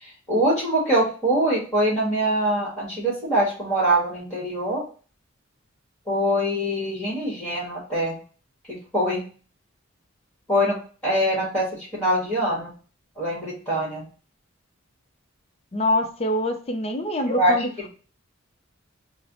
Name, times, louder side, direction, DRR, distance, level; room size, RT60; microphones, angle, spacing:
voice 1, 0.0-4.8 6.1-8.2 8.7-9.2 10.5-10.8 11.0-11.6 11.9-12.7 13.2-14.0 17.3-17.6, right 1 dB, 10° left, -6 dB, 1.2 m, -23 dB
voice 2, 15.7-17.9, left 1 dB, 30° left, 6 dB, 0.5 m, -25 dB
3.2 x 2.0 x 3.7 m, 0.39 s
head